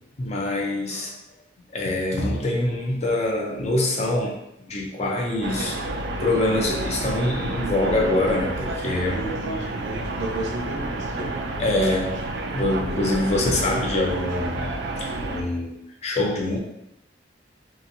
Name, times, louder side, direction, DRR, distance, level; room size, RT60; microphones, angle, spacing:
voice 1, 0.2-1.1 1.7-4.4 4.6-9.2 9.5-9.7 11.6-12.2 12.5-16.6, left 1 dB, 35° left, -1 dB, 0.5 m, -25 dB
sound 1, 5.4-15.4, right 2 dB, 65° right, 0.3 m, -30 dB
voice 2, 9.1-11.3, right 1 dB, 85° right, -2 dB, 0.8 m, -33 dB
2.9 x 2.5 x 2.6 m, 0.83 s
head